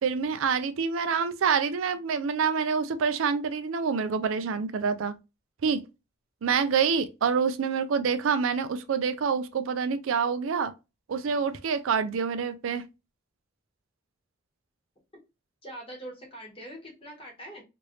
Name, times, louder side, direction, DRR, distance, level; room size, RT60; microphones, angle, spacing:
voice 1, 0.0-5.1 5.6-5.8 6.4-10.7 11.1-12.8, right 6 dB, 80° right, 0.4 m, -27 dB
voice 2, 15.6-17.6, right 1 dB, 30° left, 1.3 m, -43 dB
3.1 x 2.5 x 3.0 m
head